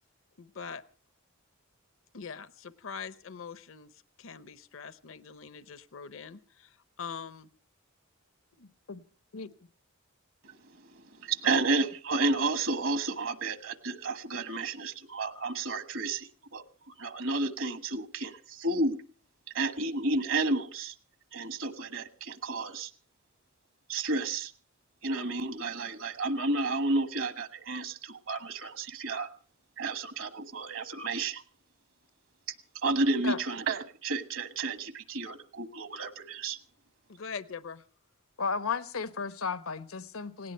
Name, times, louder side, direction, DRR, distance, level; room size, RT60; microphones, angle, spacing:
voice 1, 0.4-0.8 2.1-7.5 11.4-11.6 37.1-37.8, left 6 dB, 65° left, 15 dB, 0.8 m, -43 dB
voice 2, 8.6-9.0 9.3-9.5 33.2-33.4 38.4-40.5, left 5 dB, 85° left, 12 dB, 1.1 m, -34 dB
voice 3, 11.1-19.0 19.5-20.9 21.3-22.9 23.9-24.5 25.0-29.3 29.8-31.4 32.8-36.6, right 3 dB, 65° right, 11 dB, 1.4 m, -31 dB
18.5 x 18.0 x 4.4 m, 0.39 s
head